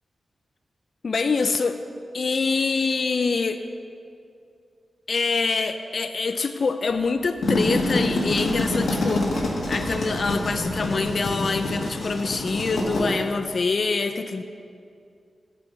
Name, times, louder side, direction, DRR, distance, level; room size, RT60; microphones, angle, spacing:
voice 1, 1.0-1.8 2.1-3.6 5.1-14.4, left 4 dB, 50° left, 8 dB, 0.3 m, -25 dB
sound 1, 7.2-13.0, left 1 dB, 80° left, 1.7 m, -26 dB
9.1 x 5.0 x 7.6 m, 2.4 s
wide cardioid pair, 120°, 0 cm